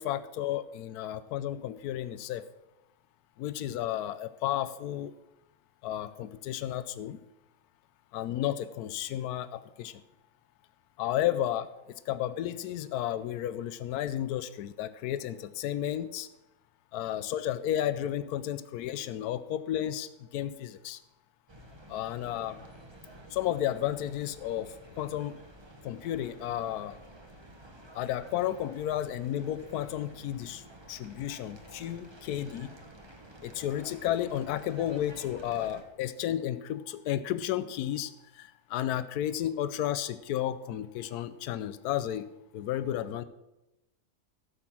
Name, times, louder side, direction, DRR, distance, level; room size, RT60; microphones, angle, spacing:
voice 1, 0.0-2.4 3.4-5.1 5.8-7.2 8.1-10.0 11.0-11.7 12.1-16.3 16.9-21.0 21.9-22.6 23.3-25.4 25.8-27.0 27.9-30.6 30.9-32.8 33.4-42.3 42.5-43.2, left 11 dB, 85° left, 13 dB, 1.1 m, -32 dB
sound 1, 21.5-35.8, right 1 dB, 20° right, 1.1 m, -51 dB
12.5 x 7.8 x 6.0 m, 0.96 s
omnidirectional pair, 1.6 m